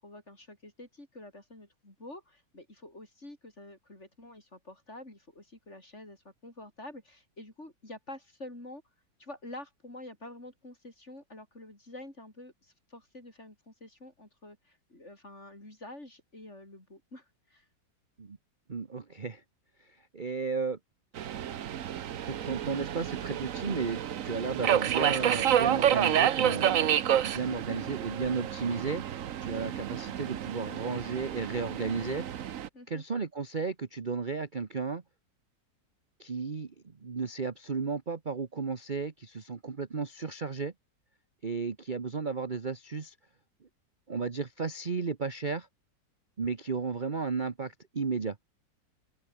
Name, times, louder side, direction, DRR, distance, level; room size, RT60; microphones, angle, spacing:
voice 1, 0.0-8.8 9.2-17.7 32.7-33.0, left 1 dB, 40° left, 7.2 m, -48 dB
voice 2, 18.7-19.4 19.8-19.9 20.1-20.8 22.3-29.0 29.4-32.2 32.9-35.0 36.2-36.7 37.0-40.7 41.4-43.1 44.1-45.7 46.4-48.4, right 4 dB, 30° right, 1.2 m, -34 dB
Subway metro underground, 21.2-32.7, right 10 dB, 55° right, 1.1 m, -29 dB
omnidirectional pair, 1.9 m